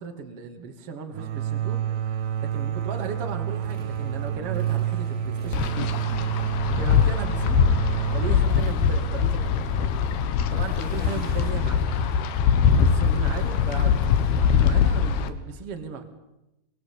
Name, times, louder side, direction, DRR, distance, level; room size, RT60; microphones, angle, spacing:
voice 1, 0.0-2.0 2.4-5.8 6.6-7.6 8.1-9.7 10.5-11.9 12.5-16.0, right 5 dB, 35° right, 5 dB, 3.0 m, -37 dB
sound 1, 1.1-10.6, right 10 dB, 70° right, 3.0 m, -29 dB
Motorcycle, 2.5-15.4, left 1 dB, 15° right, 2.9 m, -43 dB
Wind, 5.5-15.3, left 7 dB, 70° left, 3.2 m, -22 dB
25.5 x 23.0 x 8.9 m, 0.93 s
omnidirectional pair, 5.1 m